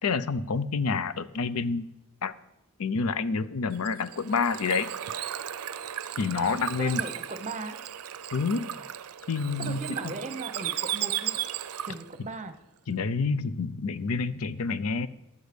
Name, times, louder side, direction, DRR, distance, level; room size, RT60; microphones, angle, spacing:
voice 1, 0.0-1.9 2.2-2.3 2.8-4.9 6.2-7.0 8.3-8.7 9.3-10.1 12.9-15.1, left 4 dB, 70° left, 15 dB, 0.6 m, -28 dB
Bird / Water, 3.7-12.1, right 11 dB, 75° right, 0.5 m, -35 dB
voice 2, 6.4-7.8 9.6-11.4 11.8-12.5, right 3 dB, 35° right, 10 dB, 0.8 m, -38 dB
12.0 x 8.1 x 5.1 m, 0.91 s
head